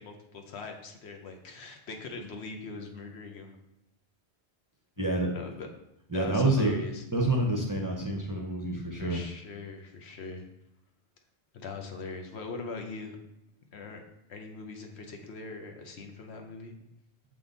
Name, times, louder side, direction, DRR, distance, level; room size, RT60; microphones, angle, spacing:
voice 1, 0.0-3.6 5.0-5.7 6.1-7.0 8.9-10.5 11.5-13.2 13.7-14.0 14.3-16.7, left 3 dB, 75° left, 4 dB, 1.1 m, -41 dB
voice 2, 5.0-5.3 6.1-6.7 7.1-9.2, right 2 dB, 20° right, 0 dB, 0.6 m, -27 dB
6.9 x 3.8 x 3.9 m, 0.82 s
omnidirectional pair, 1.1 m